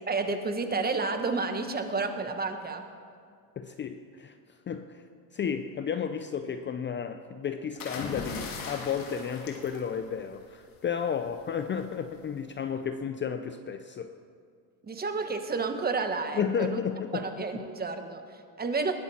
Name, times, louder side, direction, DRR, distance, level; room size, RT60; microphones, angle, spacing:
voice 1, 0.1-2.8 14.8-16.8 17.1-18.9, right 4 dB, 20° right, 7 dB, 1.4 m, -31 dB
voice 2, 3.6-4.3 4.7-5.0 5.3-14.1 16.3-17.7, left 7 dB, 25° left, 9 dB, 0.6 m, -33 dB
sound 1, 7.8-10.6 11.8-12.1, left 4 dB, 50° left, 2.9 m, -39 dB
20.5 x 13.0 x 4.4 m, 2.2 s
supercardioid pair, 110°, 42 cm